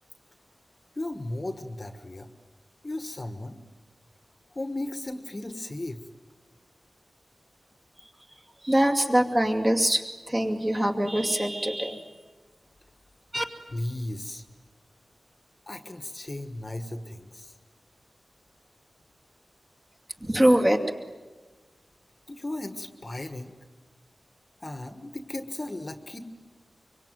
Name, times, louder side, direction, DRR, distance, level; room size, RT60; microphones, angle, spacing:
voice 1, 0.9-2.3 2.8-3.6 4.5-6.0 13.7-14.4 15.7-17.5 22.3-23.5 24.6-26.2, left 1 dB, 30° left, 8 dB, 1.5 m, -35 dB
voice 2, 8.6-12.0 13.3-13.4 20.2-20.8, right 1 dB, 20° right, 2 dB, 2.5 m, -23 dB
24.5 x 24.5 x 9.3 m, 1.3 s
wide cardioid pair, 115°, 0 cm